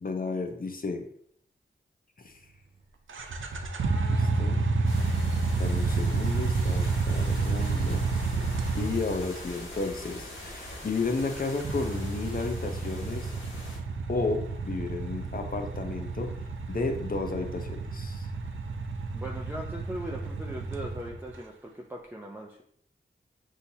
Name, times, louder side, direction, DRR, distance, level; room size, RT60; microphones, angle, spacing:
voice 1, 0.0-1.0 2.2-2.4 4.1-4.6 5.6-8.0 8.8-13.3 14.1-16.3 16.7-18.3, left 3 dB, 45° left, 5 dB, 0.7 m, -33 dB
sound 1, 3.1-9.5 11.2-21.3, right 4 dB, 80° right, 0.5 m, -30 dB
sound 2, 4.8-13.8, left 1 dB, 85° left, 1.5 m, -43 dB
voice 2, 19.1-22.6, right 1 dB, 10° right, -1 dB, 0.6 m, -39 dB
6.3 x 2.8 x 2.7 m, 0.66 s
cardioid pair, 45°, 20 cm